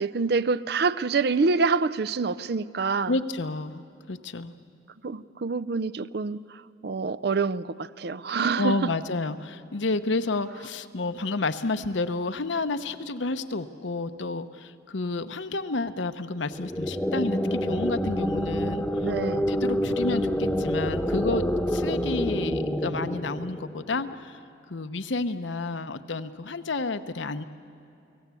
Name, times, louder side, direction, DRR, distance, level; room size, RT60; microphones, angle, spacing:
voice 1, 0.0-3.1 5.0-8.8 19.0-19.5, right 4 dB, 55° right, 15 dB, 0.5 m, -26 dB
voice 2, 3.1-3.8 4.1-4.5 8.6-19.1 19.5-24.4 24.7-27.4, left 3 dB, 75° left, 10 dB, 0.8 m, -30 dB
sound 1, 16.5-24.1, equal, 5° left, 1.0 m, -27 dB
29.0 x 18.5 x 8.3 m, 2.7 s
head